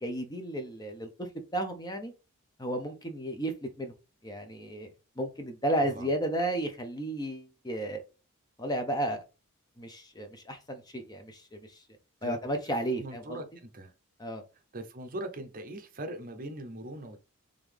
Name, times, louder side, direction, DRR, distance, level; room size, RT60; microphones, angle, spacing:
voice 1, 0.0-2.1 2.6-3.9 4.2-4.9 5.2-8.0 8.6-9.2 9.8-11.8 12.2-13.4 14.2-14.4, right 1 dB, 20° left, 0.7 m, -33 dB
voice 2, 5.8-6.1 12.2-12.4 13.0-13.4 13.7-13.9 14.7-17.2, right 1 dB, 40° right, 0.7 m, -40 dB
3.8 x 3.5 x 3.4 m
head